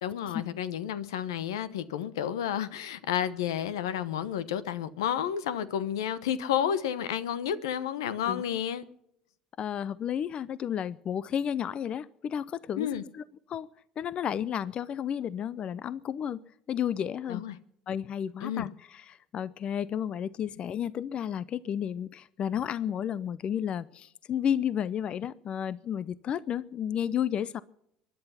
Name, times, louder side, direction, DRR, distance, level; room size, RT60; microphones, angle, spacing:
voice 1, 0.0-8.8 12.8-13.0 17.3-17.6 18.4-18.7, left 9 dB, 90° left, 1.0 m, -31 dB
voice 2, 9.6-12.9 13.1-13.2 13.5-13.7 14.0-16.4 16.7-17.4 17.9-27.6, left 9 dB, 50° left, 0.6 m, -32 dB
23.5 x 10.5 x 5.7 m
hypercardioid pair, 75°, 2 cm